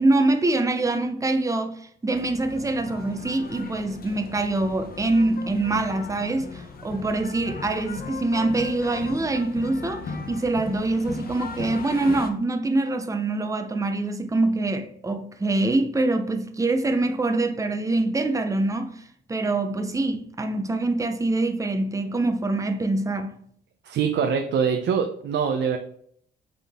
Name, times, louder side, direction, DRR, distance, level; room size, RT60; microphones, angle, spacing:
voice 1, 0.0-23.3, right 2 dB, 15° right, 0.8 m, -24 dB
sound 1, 2.1-12.3, left 4 dB, 50° left, 0.9 m, -38 dB
voice 2, 23.8-25.8, right 6 dB, 65° right, 0.7 m, -24 dB
8.2 x 3.8 x 3.6 m
cardioid pair, 90°, 20 cm